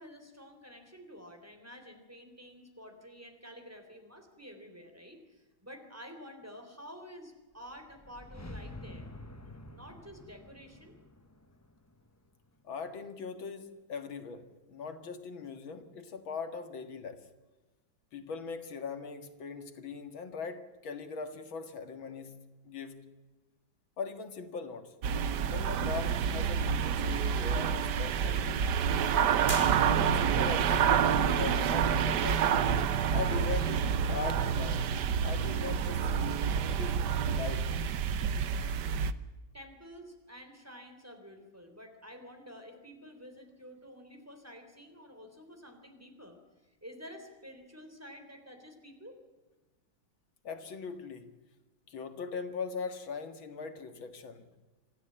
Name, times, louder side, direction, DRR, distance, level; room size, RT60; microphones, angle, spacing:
voice 1, 0.0-9.1 9.6-11.0 39.5-46.4 46.6-49.2, equal, 5° right, 6 dB, 3.4 m, -50 dB
sound 1, 7.6-12.8, left 1 dB, 20° left, 0.4 m, -49 dB
voice 2, 12.6-17.3 18.1-22.3 22.6-23.0 24.0-24.9 25.4-28.8 29.8-32.5 33.1-36.3 36.7-37.0 37.3-37.7 50.4-51.3 51.9-54.5, left 5 dB, 75° left, 8 dB, 2.6 m, -40 dB
sound 2, 25.0-39.1, right 7 dB, 65° right, 1.4 m, -28 dB
sound 3, 29.5-30.5, right 1 dB, 25° right, 3.7 m, -38 dB
26.5 x 15.0 x 8.7 m, 1.2 s
omnidirectional pair, 2.2 m